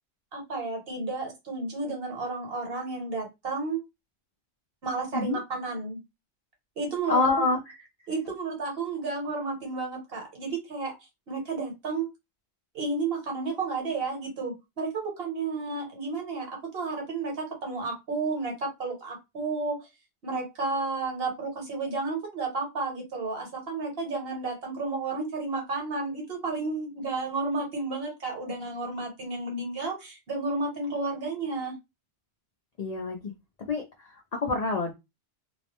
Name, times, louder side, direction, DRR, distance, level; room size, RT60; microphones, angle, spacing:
voice 1, 0.3-3.8 4.8-6.0 6.8-7.2 8.1-10.9 11.3-12.1 12.7-19.9 20.2-31.8, right 3 dB, 60° right, 1.2 m, -32 dB
voice 2, 7.1-7.8 32.8-33.3 33.7-34.9, left 3 dB, 60° left, 0.4 m, -27 dB
2.3 x 2.1 x 2.9 m
omnidirectional pair, 1.2 m